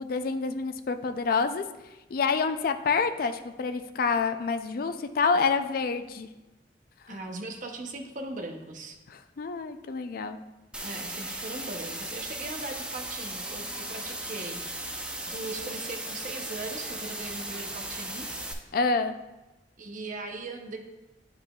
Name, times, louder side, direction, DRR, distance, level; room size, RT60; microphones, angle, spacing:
voice 1, 0.0-1.6 2.1-6.3 7.1-7.2 9.1-10.4 18.7-19.2, left 4 dB, 55° left, 9 dB, 0.4 m, -27 dB
voice 2, 7.1-9.0 10.8-18.5 19.8-20.8, right 2 dB, 45° right, 4 dB, 0.7 m, -39 dB
sound 1, 10.7-18.5, right 1 dB, 5° right, 0.5 m, -37 dB
9.2 x 4.9 x 2.3 m, 1.0 s
head